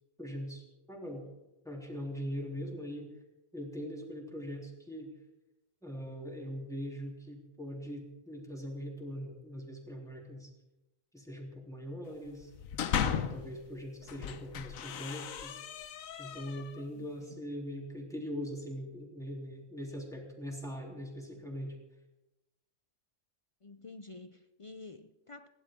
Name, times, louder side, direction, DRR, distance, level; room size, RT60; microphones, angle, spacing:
voice 1, 0.2-1.3 1.6-3.1 3.5-5.1 5.8-10.5 11.1-12.5 13.1-15.6 16.2-21.8, equal, ahead, -1 dB, 3.1 m, -41 dB
sound 1, 12.4-13.5 14.0-16.8, left 8 dB, 85° left, 1.3 m, -36 dB
voice 2, 23.6-25.5, left 3 dB, 45° left, 10 dB, 0.4 m, -49 dB
29.5 x 11.5 x 3.7 m, 1.0 s
omnidirectional pair, 1.4 m